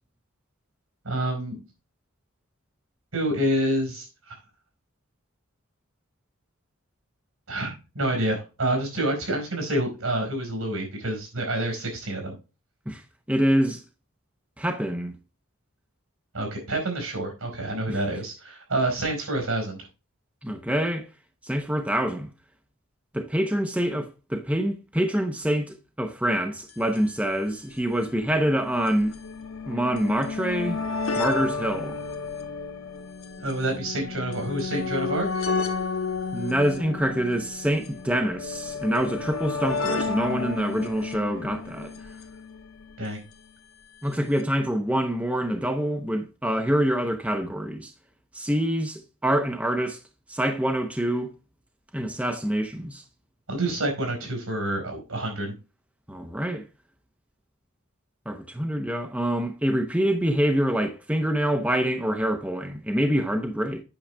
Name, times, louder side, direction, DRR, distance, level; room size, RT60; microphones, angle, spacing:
voice 1, 1.0-1.6 3.1-4.4 7.5-12.3 16.3-19.8 33.4-35.5 43.0-43.2 53.5-55.6, right 1 dB, 75° right, 4.5 m, -28 dB
voice 2, 13.3-13.8 14.6-15.1 17.9-18.0 20.4-21.1 21.4-22.3 23.1-29.1 29.7-30.8 31.1-32.0 36.3-41.9 44.0-47.9 48.3-50.0 50.3-51.3 51.9-53.0 56.1-56.6 58.3-63.8, equal, 5° right, 0.7 m, -26 dB
sound 1, 26.7-26.8 27.0-27.1 27.9-43.2 44.1-44.2 44.4-44.5, left 4 dB, 70° left, 1.3 m, -32 dB
8.8 x 6.4 x 3.3 m
head